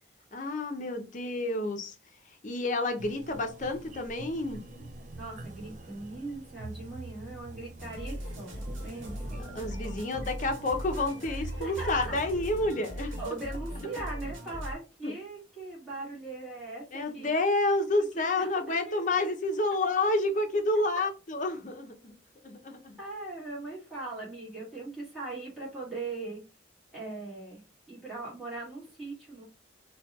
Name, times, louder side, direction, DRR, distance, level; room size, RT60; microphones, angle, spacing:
voice 1, 0.3-1.9 2.4-4.9 9.5-13.2 13.8-13.9 15.0-15.1 16.9-22.1 22.4-23.0, left 2 dB, 40° left, 0.5 m, -29 dB
sound 1, 3.0-12.7, right 2 dB, 40° right, 0.4 m, -45 dB
voice 2, 5.1-9.4 11.3-12.2 13.2-17.3 18.0-19.3 23.0-26.4 26.9-27.6 27.9-29.4, right 3 dB, ahead, 1.4 m, -40 dB
sound 2, 7.8-14.8, equal, 80° right, 1.1 m, -39 dB
4.1 x 2.2 x 2.3 m
head